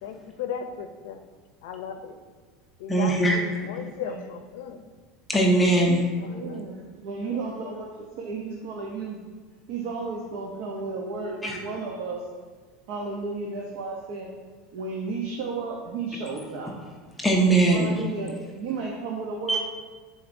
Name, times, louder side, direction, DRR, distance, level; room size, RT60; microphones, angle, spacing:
voice 1, 0.0-1.2 1.6-2.2 2.8-4.8 6.1-6.6 7.2-7.8 17.5-18.1, left 7 dB, 70° left, 8 dB, 0.5 m, -37 dB
voice 2, 2.9-3.4 5.3-6.0 11.4-11.6 17.2-17.9 19.5-19.6, right 2 dB, 5° left, -1 dB, 0.5 m, -20 dB
voice 3, 3.8-4.2 6.1-9.2 9.7-12.2 12.9-14.3 14.7-16.7 17.7-19.6, right 4 dB, 55° right, -1 dB, 0.7 m, -33 dB
9.9 x 4.0 x 2.6 m, 1.5 s
supercardioid pair, 175°, 0 cm